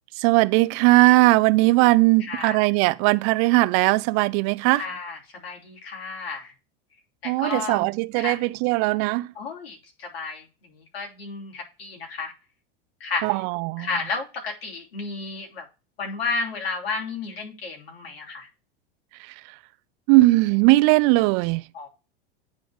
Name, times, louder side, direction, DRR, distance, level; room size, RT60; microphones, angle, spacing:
voice 1, 0.2-4.8 7.2-9.3 13.2-13.9 20.1-21.6, right 21 dB, 50° right, 0.5 m, -19 dB
voice 2, 2.2-2.6 4.8-6.5 7.2-7.9 8.1-8.4 9.3-12.3 13.0-13.4 13.8-15.6 16.0-18.5 21.7-21.9, left 4 dB, 85° left, 3.2 m, -32 dB
9.4 x 3.9 x 4.9 m
hypercardioid pair, 110°, 30 cm